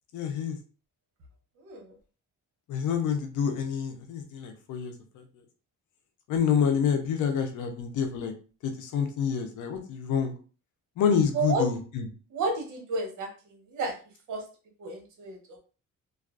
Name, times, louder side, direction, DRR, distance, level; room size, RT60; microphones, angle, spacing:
voice 1, 0.1-0.6 2.7-4.9 6.3-8.3 8.6-10.3 11.0-12.1, left 7 dB, 80° left, 5 dB, 0.6 m, -27 dB
voice 2, 12.3-13.3 13.7-13.9 14.3-14.4 14.8-15.6, right 3 dB, 80° right, 1 dB, 0.9 m, -30 dB
2.4 x 2.3 x 2.3 m, 0.37 s
cardioid pair, 90°, 30 cm